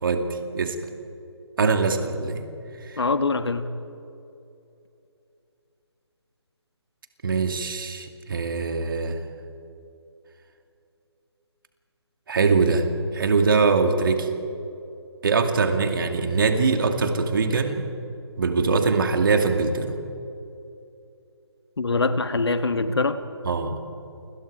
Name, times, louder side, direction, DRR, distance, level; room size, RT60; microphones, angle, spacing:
voice 1, 0.0-0.8 1.6-2.4 2.8-3.0 7.2-9.2 12.3-12.8 13.1-14.3 15.2-17.9 18.4-20.0 23.4-23.8, right 4 dB, 50° right, 5 dB, 2.5 m, -22 dB
voice 2, 3.0-3.7 21.8-23.2, left 3 dB, 65° left, 10 dB, 1.5 m, -23 dB
29.0 x 25.0 x 4.9 m, 2.7 s
figure-of-eight pair, 145°, 15 cm